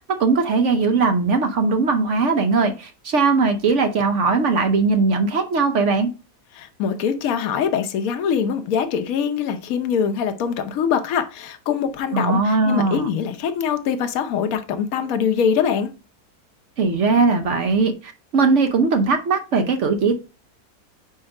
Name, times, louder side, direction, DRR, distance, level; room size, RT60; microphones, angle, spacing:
voice 1, 0.0-6.1 12.1-13.1 16.8-20.2, right 4 dB, 60° right, 0.9 m, -19 dB
voice 2, 6.5-15.9, left 7 dB, 65° left, 1.2 m, -23 dB
4.9 x 4.4 x 4.7 m
omnidirectional pair, 1.7 m